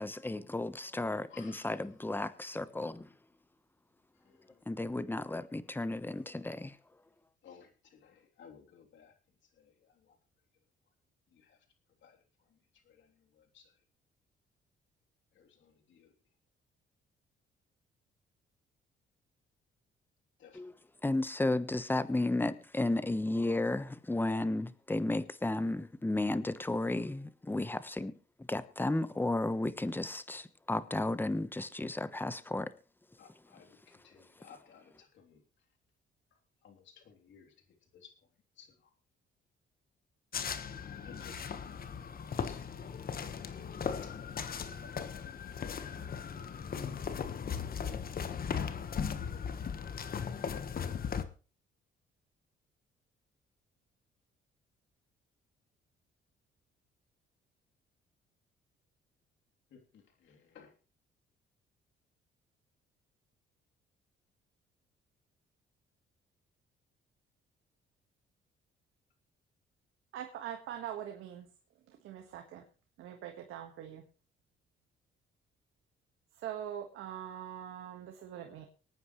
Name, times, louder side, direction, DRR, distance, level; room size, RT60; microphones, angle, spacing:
voice 1, 0.0-3.1 4.7-6.8 20.5-20.7 21.0-28.1 28.4-32.7, left 2 dB, 10° left, 1.1 m, -33 dB
voice 2, 1.3-1.8 4.1-4.7 6.1-6.2 7.4-10.2 11.3-11.7 12.0-13.8 15.3-16.1 20.4-20.8 33.2-35.4 36.3-38.1 38.5-38.9 41.0-43.0 44.0-44.1 44.4-45.2 45.7-46.8 49.1-49.5 49.8-50.0 59.7-60.7, left 7 dB, 70° left, 3.3 m, -59 dB
sound 1, 40.3-51.2, left 7 dB, 50° left, 1.3 m, -38 dB
voice 3, 70.1-71.5 71.9-72.6 73.0-74.0 76.4-78.7, right 10 dB, 90° right, 1.6 m, -43 dB
24.5 x 9.4 x 3.2 m
cardioid pair, 90°, 20 cm